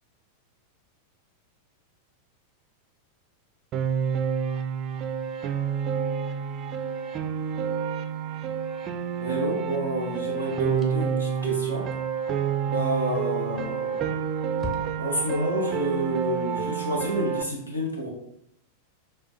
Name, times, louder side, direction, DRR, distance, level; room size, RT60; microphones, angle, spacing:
Piano, 3.7-17.4, right 7 dB, 35° right, 0.3 m, -29 dB
voice 1, 9.2-11.9 12.6-14.2 15.0-18.1, equal, 80° left, 0 dB, 1.0 m, -29 dB
sound 1, 10.7-11.2 13.3-13.8 14.1-14.2 14.6-15.3, left 3 dB, 20° left, 0.7 m, -40 dB
6.6 x 2.2 x 2.8 m, 0.75 s
figure-of-eight pair, 90°, 0 cm